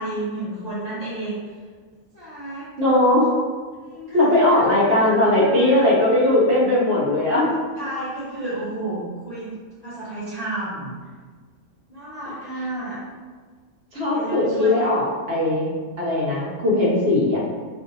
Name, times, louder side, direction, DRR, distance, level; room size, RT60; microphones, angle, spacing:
voice 1, 0.0-1.4 2.1-2.7 3.8-5.7 7.8-9.5 9.8-11.0 11.9-13.0 14.1-14.9, right 1 dB, 45° left, -10 dB, 0.5 m, -32 dB
voice 2, 2.8-3.3 4.1-7.5 13.9-15.7 16.0-17.4, left 1 dB, 55° right, -5 dB, 0.8 m, -19 dB
2.6 x 2.6 x 3.8 m, 1.6 s
omnidirectional pair, 1.5 m